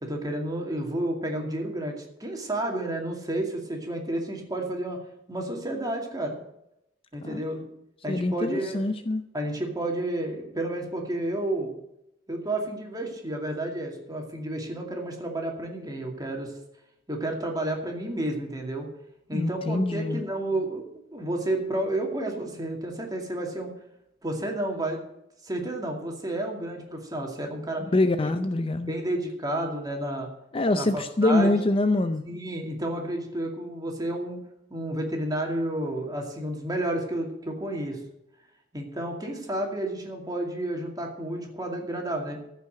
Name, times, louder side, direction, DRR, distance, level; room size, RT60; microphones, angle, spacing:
voice 1, 0.0-5.0 5.3-6.4 7.1-7.7 8.0-8.9 9.3-11.7 12.3-16.5 17.1-18.9 19.3-20.8 21.1-23.7 24.2-25.0 25.4-27.8 28.2-28.3 28.8-30.3 30.8-31.5 32.3-34.4 34.7-38.0 38.7-42.4, right 1 dB, 20° right, 1 dB, 2.4 m, -31 dB
voice 2, 8.1-9.2 19.3-20.2 27.9-28.9 30.5-32.2, left 2 dB, 30° left, 9 dB, 0.5 m, -24 dB
15.0 x 5.7 x 7.8 m, 0.83 s
head